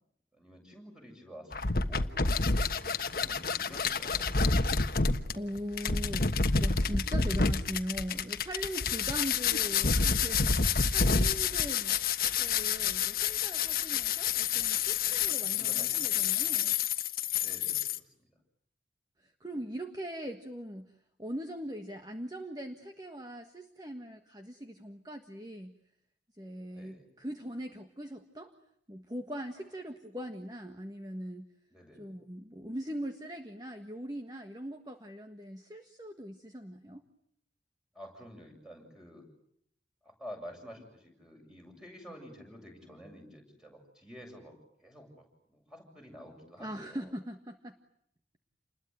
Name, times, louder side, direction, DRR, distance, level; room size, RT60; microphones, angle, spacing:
voice 1, 0.3-4.8 15.2-15.9 17.4-17.9 18.2-18.3 26.7-27.0 31.7-32.1 37.9-39.2 40.0-44.5 44.8-45.2 45.5-47.1, equal, 5° right, 2 dB, 7.6 m, -50 dB
sound 1, 1.5-18.0, left 5 dB, 55° left, 1.3 m, -28 dB
voice 2, 5.2-12.0 12.4-16.7 19.2-20.9 21.2-25.8 26.4-28.5 28.9-31.5 32.0-37.0 46.6-47.7, equal, 20° right, 6 dB, 1.6 m, -41 dB
29.5 x 21.5 x 9.4 m, 0.72 s
head